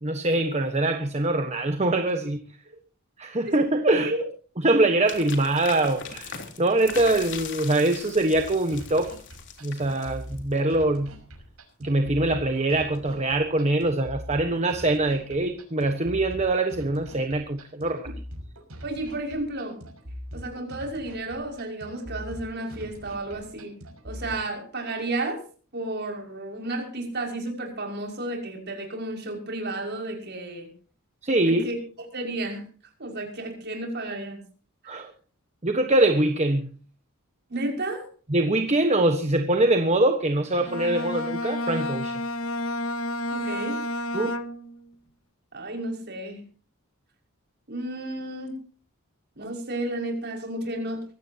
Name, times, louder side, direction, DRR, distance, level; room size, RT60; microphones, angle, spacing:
voice 1, 0.0-2.4 3.2-4.1 4.6-9.1 9.6-11.1 11.8-18.1 31.2-31.7 34.8-35.1 35.6-36.7 38.3-42.2 44.1-44.3, right 2 dB, 30° right, 1.3 m, -23 dB
sound 1, 5.1-10.6, left 6 dB, 55° left, 3.6 m, -40 dB
sound 2, 8.3-24.3, equal, 85° right, 6.1 m, -42 dB
voice 2, 18.8-19.8 20.3-23.7 24.0-25.4 25.7-30.7 31.5-31.8 32.1-32.7 33.0-34.4 34.8-35.1 37.5-38.1 43.3-43.8 45.5-46.4 47.7-48.6 49.4-51.0, right 2 dB, 50° right, 5.8 m, -32 dB
Bowed string instrument, 40.6-44.9, left 1 dB, 75° left, 1.3 m, -30 dB
24.0 x 16.5 x 2.9 m
head